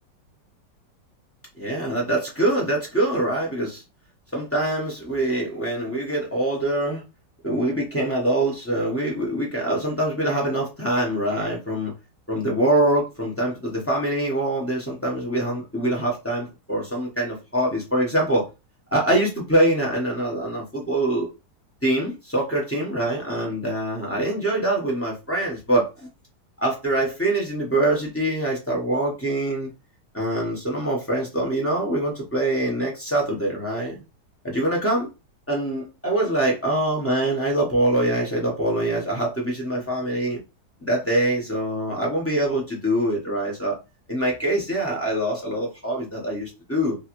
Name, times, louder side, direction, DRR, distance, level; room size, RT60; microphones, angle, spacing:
voice 1, 1.6-3.8 4.3-7.0 7.4-11.9 12.3-18.5 18.9-21.3 21.8-26.1 26.6-29.7 30.1-34.0 34.4-35.1 35.5-40.4 40.8-43.8 44.1-47.0, right 1 dB, 20° left, 0.3 m, -24 dB
3.1 x 2.5 x 3.0 m
omnidirectional pair, 1.9 m